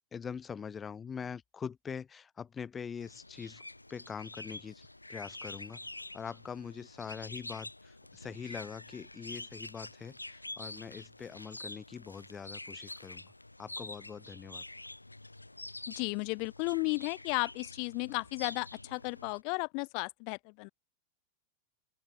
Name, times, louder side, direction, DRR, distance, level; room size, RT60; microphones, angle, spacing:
voice 1, 0.1-3.6 3.9-5.8 6.1-13.3 13.6-14.6, left 6 dB, 20° left, 3.0 m, -43 dB
sound 1, 3.0-19.4, left 2 dB, 85° left, 4.9 m, -47 dB
voice 2, 15.9-20.7, left 39 dB, 45° left, 2.5 m, -34 dB
open air
figure-of-eight pair, 90°, 0 cm